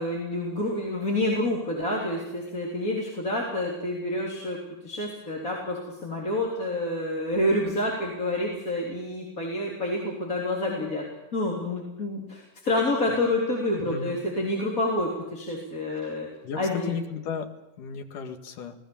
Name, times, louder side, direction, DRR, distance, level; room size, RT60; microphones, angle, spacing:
voice 1, 0.0-4.6 4.8-11.0 11.3-16.3 16.6-17.0, left 1 dB, 25° left, -2 dB, 3.8 m, -28 dB
voice 2, 13.8-14.1 16.0-16.2 16.4-16.6 16.9-17.5 17.8-18.8, left 6 dB, 70° left, 6 dB, 3.4 m, -34 dB
26.5 x 19.0 x 7.2 m, 1.0 s
omnidirectional pair, 4.0 m